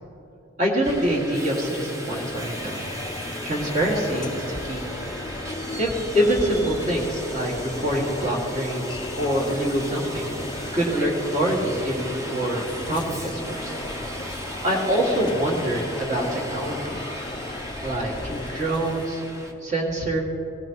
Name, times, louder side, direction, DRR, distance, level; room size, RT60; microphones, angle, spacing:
voice 1, 0.6-2.8 3.4-4.8 5.8-10.3 10.7-13.8 14.6-17.0 17.8-19.2 19.6-20.2, right 1 dB, 35° right, -3 dB, 2.0 m, -25 dB
Subway metro underground, 0.8-19.5, equal, 15° right, 0.7 m, -36 dB
sound 1, 2.1-19.1, left 3 dB, 20° left, 0.3 m, -36 dB
17.5 x 16.0 x 3.0 m, 2.9 s
head